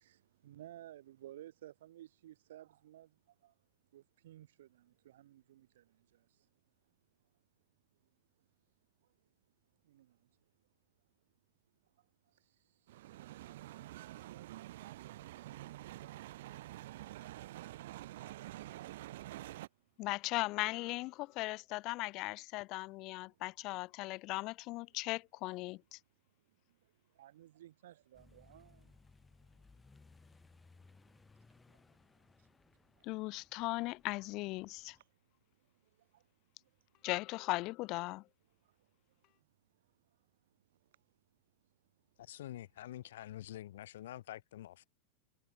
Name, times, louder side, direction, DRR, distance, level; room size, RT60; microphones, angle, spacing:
voice 1, 0.0-3.6 3.9-6.5 8.4-8.5 9.0-9.2 9.8-10.4 11.8-13.1 19.6-19.9 23.3-23.4 26.5-29.0 29.4-29.8 30.9-31.1 31.5-33.1 33.5-33.6 34.7-35.1 35.6-36.3 36.6-36.9 38.6-41.2 42.1-42.2, right 13 dB, 85° right, 2.4 m, -59 dB
sound 1, 12.9-19.7, right 15 dB, 70° right, 3.1 m, -48 dB
voice 2, 20.0-26.0 33.0-35.0 37.0-38.2, left 21 dB, 35° left, 0.5 m, -38 dB
Accelerating revving vroom, 28.1-35.0, left 3 dB, 10° left, 7.0 m, -64 dB
voice 3, 42.2-44.8, left 13 dB, 85° left, 0.9 m, -47 dB
supercardioid pair, 165°, 0 cm